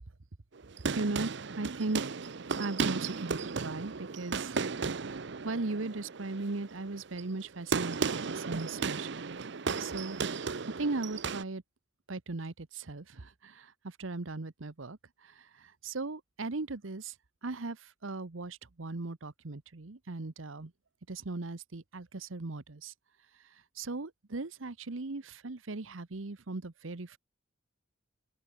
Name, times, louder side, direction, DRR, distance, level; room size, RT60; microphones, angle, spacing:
sound 1, 0.6-11.4, right 5 dB, 60° right, 0.7 m, -35 dB
voice 1, 0.9-2.0 2.6-4.6 5.0-9.4 9.8-11.6 12.1-17.2 17.4-20.7 21.1-22.9 23.3-27.2, right 3 dB, 85° right, 1.1 m, -38 dB
open air
head